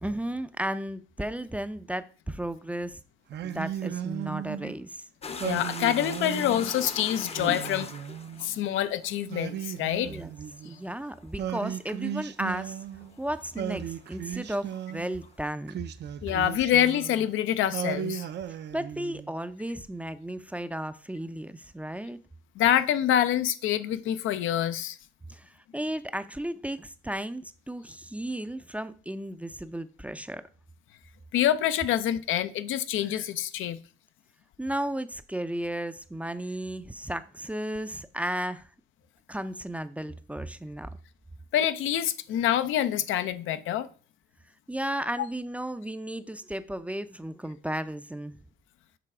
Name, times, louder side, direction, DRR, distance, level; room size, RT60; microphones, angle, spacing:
voice 1, 0.0-3.0 3.4-5.1 10.0-10.3 10.6-12.8 13.2-15.7 18.7-22.2 25.3-30.4 34.6-38.7 39.3-40.9 44.7-48.3, right 1 dB, 5° right, 0.4 m, -34 dB
Singing, 3.3-4.8 5.4-6.7 7.3-8.7 9.3-10.8 11.4-13.2 13.6-15.2 15.7-17.3 17.7-19.3, right 10 dB, 60° right, 0.5 m, -36 dB
voice 2, 5.2-7.9 8.4-10.1 16.2-18.3 22.6-25.0 31.3-33.8 41.5-43.9, left 11 dB, 80° left, 0.5 m, -26 dB
sound 1, 5.2-13.7 14.0-15.4, left 5 dB, 30° left, 0.7 m, -41 dB
6.7 x 3.2 x 4.8 m
cardioid pair, 90°, 20 cm